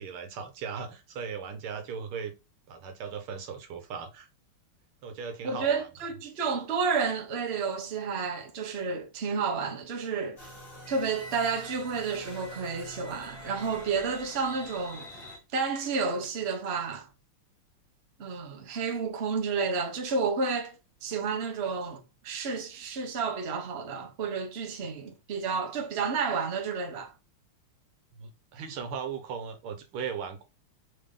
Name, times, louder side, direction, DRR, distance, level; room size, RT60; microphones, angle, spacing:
voice 1, 0.0-2.3 2.7-4.3 5.0-5.8 28.1-30.4, right 6 dB, 75° right, 1.7 m, -37 dB
voice 2, 5.4-10.4 10.9-15.1 15.5-17.1 18.2-20.7 21.0-27.1, right 5 dB, 45° right, 0.8 m, -31 dB
sound 1, 10.4-15.4, equal, 25° left, 1.6 m, -45 dB
4.0 x 3.5 x 3.7 m
omnidirectional pair, 2.4 m